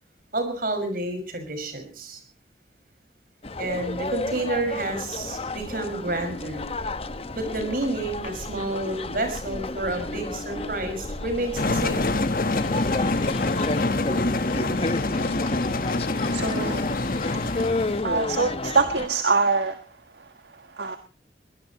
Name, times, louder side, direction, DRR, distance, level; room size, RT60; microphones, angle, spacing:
voice 1, 0.3-2.2 3.6-6.6 7.3-12.0, right 2 dB, 55° right, 7 dB, 5.8 m, -29 dB
sound 1, 3.4-19.1, left 2 dB, 35° left, 1.0 m, -32 dB
sound 2, 6.0-9.1 9.6-9.7 10.0-13.6 13.9-18.1, right 1 dB, 10° left, 6.4 m, -42 dB
sound 3, 11.5-18.0, left 2 dB, 50° left, 1.3 m, -25 dB
voice 2, 16.3-16.8 18.0-19.8 20.8-21.0, right 4 dB, 75° right, 8 dB, 1.5 m, -23 dB
23.0 x 18.5 x 3.0 m, 0.38 s
head